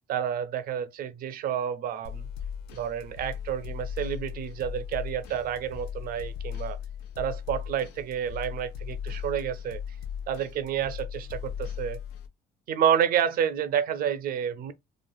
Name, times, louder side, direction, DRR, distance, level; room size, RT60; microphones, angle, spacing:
voice 1, 0.1-2.3 2.7-6.8 7.2-9.8 10.3-12.0 12.7-14.7, right 9 dB, 60° right, 0.5 m, -29 dB
sound 1, 2.0-12.3, left 8 dB, 90° left, 0.6 m, -37 dB
3.1 x 2.4 x 2.2 m
cardioid pair, 110°, 17 cm